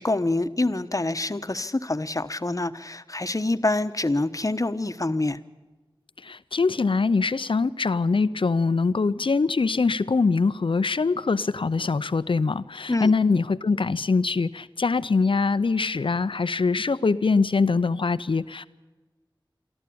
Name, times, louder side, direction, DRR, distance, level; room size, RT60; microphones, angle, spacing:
voice 1, 0.0-5.4 12.9-13.1, left 2 dB, 40° left, 11 dB, 1.1 m, -26 dB
voice 2, 6.2-18.7, left 4 dB, 90° left, 15 dB, 0.7 m, -23 dB
24.0 x 14.5 x 8.7 m, 1.3 s
wide cardioid pair, 40°, 9 cm